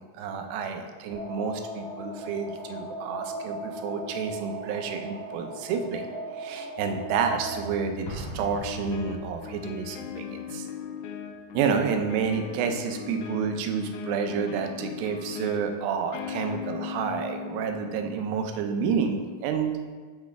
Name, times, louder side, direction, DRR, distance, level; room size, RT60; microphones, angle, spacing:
voice 1, 0.0-6.1 6.4-10.7 11.5-19.7, right 6 dB, 80° right, 6 dB, 2.4 m, -29 dB
sound 1, 1.1-7.6, right 1 dB, 50° right, 1.6 m, -38 dB
sound 2, 6.9-8.1 8.6-18.2, left 7 dB, 80° left, 1.8 m, -38 dB
Explosion, 8.0-9.6, equal, 60° left, 1.2 m, -40 dB
8.0 x 6.6 x 3.5 m, 1.5 s
omnidirectional pair, 4.2 m